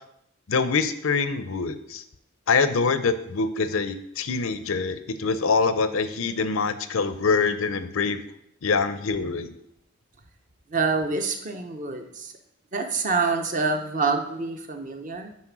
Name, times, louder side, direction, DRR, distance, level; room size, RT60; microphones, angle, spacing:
voice 1, 0.5-2.0 2.5-8.2 8.6-9.5, left 4 dB, 70° left, 11 dB, 0.6 m, -24 dB
voice 2, 10.7-12.3 12.7-15.3, right 4 dB, 35° right, 5 dB, 0.8 m, -26 dB
8.5 x 4.2 x 6.0 m, 0.77 s
head